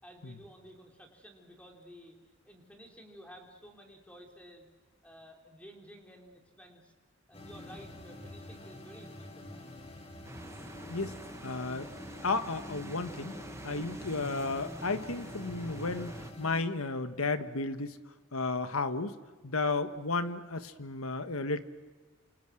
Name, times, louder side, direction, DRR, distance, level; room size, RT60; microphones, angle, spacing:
voice 1, 0.0-2.1 2.4-4.7 5.0-6.9 7.3-9.7 19.6-19.8, equal, 5° left, 2 dB, 3.8 m, -53 dB
sound 1, 7.3-16.6, left 1 dB, 30° left, 2.4 m, -47 dB
sound 2, 10.2-16.3, right 1 dB, 15° right, 0.8 m, -46 dB
voice 2, 10.9-11.9 12.2-18.0 18.3-19.2 19.4-21.6, left 3 dB, 90° left, 10 dB, 1.5 m, -33 dB
28.5 x 27.0 x 6.3 m, 1.4 s
head